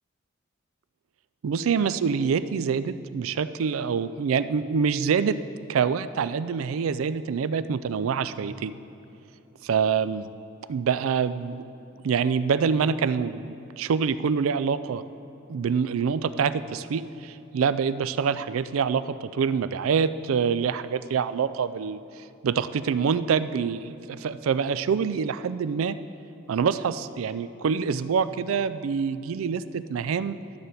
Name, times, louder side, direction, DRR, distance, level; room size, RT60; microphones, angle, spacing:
voice 1, 1.4-5.4 5.7-8.8 9.6-10.2 10.7-11.6 12.0-15.0 15.5-26.0 26.5-30.4, right 6 dB, 85° right, 14 dB, 0.4 m, -26 dB
12.0 x 7.8 x 4.1 m, 3.0 s
head